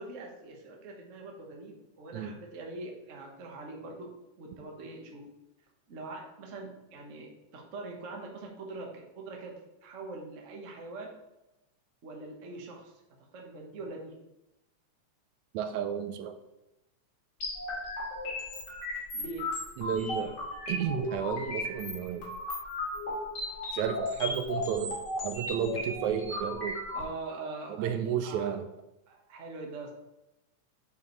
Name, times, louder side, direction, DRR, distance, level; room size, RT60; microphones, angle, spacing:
voice 1, 0.0-4.1 4.4-5.3 5.9-11.1 12.0-12.9 13.3-14.2 19.1-19.5 19.9-20.4 26.9-28.5 29.1-29.9, right 3 dB, 55° right, 0 dB, 0.8 m, -43 dB
voice 2, 15.5-16.4 19.8-20.3 20.7-22.3 23.7-25.0 25.2-26.8 27.8-28.7, right 8 dB, 80° right, 8 dB, 1.9 m, -32 dB
sound 1, 17.4-27.0, left 1 dB, 35° left, 2.7 m, -35 dB
8.9 x 5.3 x 3.1 m, 0.93 s
omnidirectional pair, 3.4 m